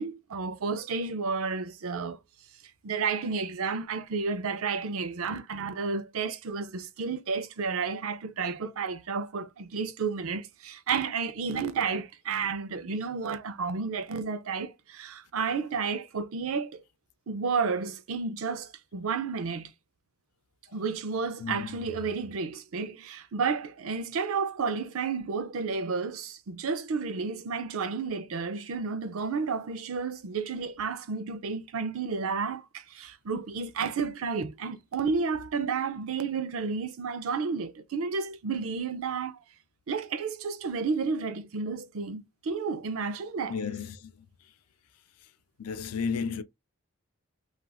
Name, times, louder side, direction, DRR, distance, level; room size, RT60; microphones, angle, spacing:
voice 1, 0.0-2.2 2.8-16.8 17.3-19.7 20.7-39.4 39.9-43.6, right 5 dB, 70° right, 0.5 m, -31 dB
voice 2, 21.4-21.8 43.5-44.0 45.6-46.4, left 5 dB, 85° left, 0.5 m, -33 dB
3.4 x 2.4 x 2.3 m
head